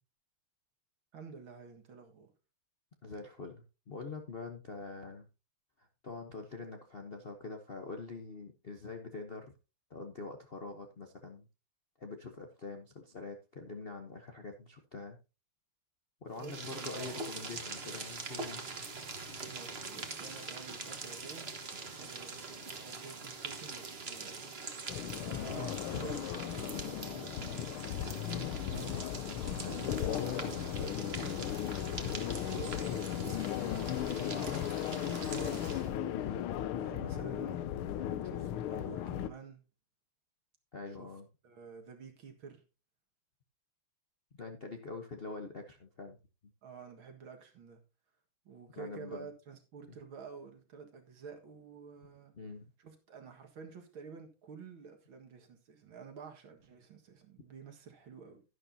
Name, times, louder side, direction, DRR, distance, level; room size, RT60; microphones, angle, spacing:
voice 1, 1.1-2.3 16.4-17.2 19.5-24.4 25.2-27.8 28.7-29.0 29.7-31.5 31.9-36.5 36.8-37.7 38.2-39.6 40.9-41.1 41.4-42.6 46.6-47.8 48.5-52.4 52.8-58.4, right 6 dB, 70° right, 2.5 m, -50 dB
voice 2, 3.0-5.3 5.8-9.5 9.9-11.4 12.0-15.2 16.2-18.6 28.3-28.5 29.6-29.8 40.7-41.3 44.4-46.2 48.8-49.3 52.3-52.6, left 3 dB, 45° left, 0.8 m, -44 dB
sound 1, 16.3-36.0, right 4 dB, 35° right, 1.4 m, -43 dB
sound 2, 24.9-39.3, left 10 dB, 85° left, 1.6 m, -36 dB
11.5 x 11.0 x 2.7 m
omnidirectional pair, 2.3 m